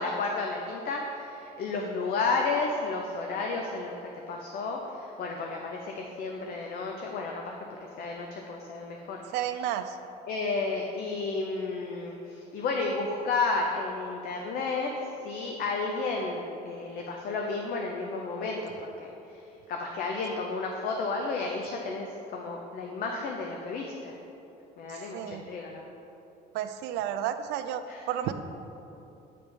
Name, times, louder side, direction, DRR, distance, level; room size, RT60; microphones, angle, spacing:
voice 1, 0.0-3.9 4.3-7.5 8.0-9.2 10.3-14.9 15.2-19.1 19.7-24.2 24.8-25.9 27.9-28.0, left 3 dB, 60° left, 1 dB, 0.6 m, -32 dB
voice 2, 9.3-10.0 24.9-25.5 26.5-27.8 28.1-28.3, right 11 dB, 90° right, 9 dB, 0.4 m, -31 dB
8.4 x 3.4 x 5.2 m, 2.9 s
cardioid pair, 110°, 17 cm